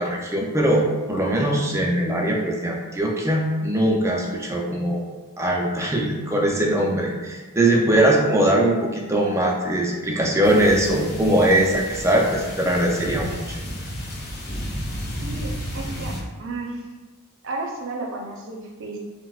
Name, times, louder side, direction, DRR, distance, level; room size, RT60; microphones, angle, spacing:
voice 1, 0.0-5.0 5.4-13.6, right 1 dB, 15° right, -1 dB, 0.4 m, -21 dB
sound 1, 10.4-16.2, equal, 45° left, 0.7 m, -32 dB
voice 2, 15.2-16.1 16.4-16.8 17.4-19.0, right 3 dB, 60° right, -1 dB, 0.6 m, -32 dB
4.1 x 2.1 x 2.3 m, 1.3 s
head